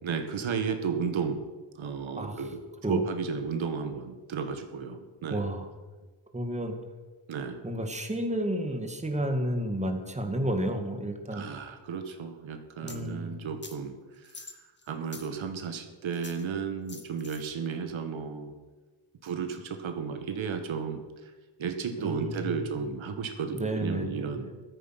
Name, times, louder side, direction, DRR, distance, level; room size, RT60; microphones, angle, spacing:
voice 1, 0.0-1.5 1.8-5.5 7.3-7.6 11.3-18.6 19.2-21.3 21.6-24.5, right 6 dB, 70° right, 6 dB, 1.9 m, -33 dB
voice 2, 5.3-5.7 6.3-6.8 7.6-11.5 12.8-13.3 22.0-22.7 23.6-24.3, right 1 dB, 15° right, 5 dB, 2.0 m, -31 dB
sound 1, 12.9-13.0 13.6-13.8 14.2-15.3 16.1-16.4 16.9-17.5, left 3 dB, 20° left, 1.7 m, -46 dB
15.0 x 13.5 x 6.0 m, 1.3 s
cardioid pair, 125°, 49 cm